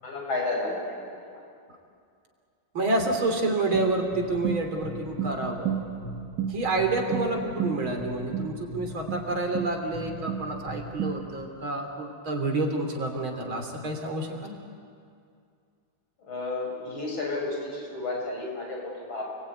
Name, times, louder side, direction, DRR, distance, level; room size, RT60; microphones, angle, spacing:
voice 1, 0.0-1.4 16.3-19.2, left 2 dB, 75° left, -1 dB, 7.2 m, -32 dB
voice 2, 2.7-5.9 6.5-14.5, right 2 dB, 80° right, 3 dB, 4.2 m, -29 dB
sound 1, 3.7-11.4, right 7 dB, 55° right, 2.2 m, -33 dB
29.5 x 21.0 x 9.4 m, 2.3 s
omnidirectional pair, 2.2 m